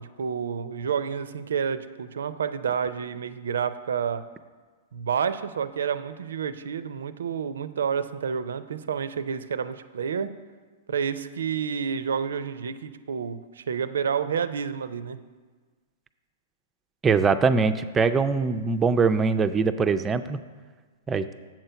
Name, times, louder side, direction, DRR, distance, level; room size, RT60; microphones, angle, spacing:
voice 1, 0.0-4.2 4.9-10.3 10.9-15.2, right 7 dB, 80° right, 13 dB, 0.4 m, -29 dB
voice 2, 17.0-20.4 21.1-21.3, right 5 dB, 20° right, 10 dB, 0.4 m, -22 dB
7.5 x 4.5 x 6.8 m, 1.4 s
hypercardioid pair, 125°, 0 cm